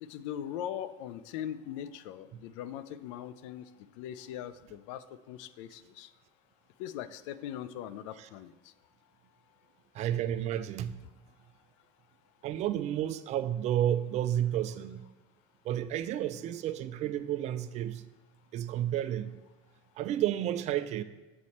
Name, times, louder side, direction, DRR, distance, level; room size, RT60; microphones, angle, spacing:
voice 1, 0.0-3.7 4.0-6.1 6.8-8.5, left 10 dB, 80° left, 14 dB, 0.4 m, -40 dB
voice 2, 9.9-11.0 12.4-15.1 15.6-18.0 18.5-19.4 20.0-21.0, right 11 dB, 45° right, 12 dB, 0.4 m, -31 dB
6.6 x 4.2 x 4.3 m, 1.1 s
supercardioid pair, 105°, 16 cm